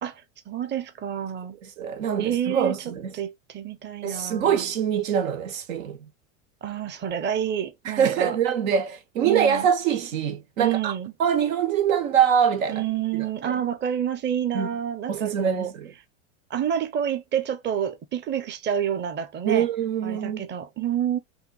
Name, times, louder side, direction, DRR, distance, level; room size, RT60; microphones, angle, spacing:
voice 1, 0.0-1.6 2.2-2.8 3.2-4.6 6.6-8.4 9.2-9.7 10.6-11.1 12.7-15.7 16.5-19.7 20.0-21.2, right 9 dB, 25° right, 0.8 m, -28 dB
voice 2, 1.6-3.1 4.0-6.0 7.8-10.9 11.2-12.8 13.1-13.6 14.5-14.7 15.1-15.9 19.4-20.4, right 8 dB, 85° right, 1.4 m, -24 dB
5.8 x 2.7 x 2.4 m
supercardioid pair, 105°, 39 cm